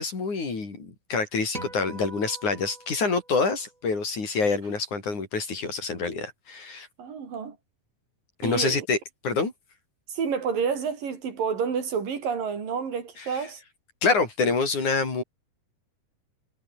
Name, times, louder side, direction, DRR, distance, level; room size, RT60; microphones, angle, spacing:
voice 1, 0.0-6.9 8.4-9.0 9.2-9.5 13.2-13.4 14.0-15.2, left 4 dB, 60° left, 7.0 m, -26 dB
sound 1, 1.5-4.0, right 2 dB, 20° right, 6.3 m, -43 dB
voice 2, 7.0-7.6 8.4-8.9 10.1-13.6, right 6 dB, 75° right, 5.5 m, -29 dB
omnidirectional pair, 3.9 m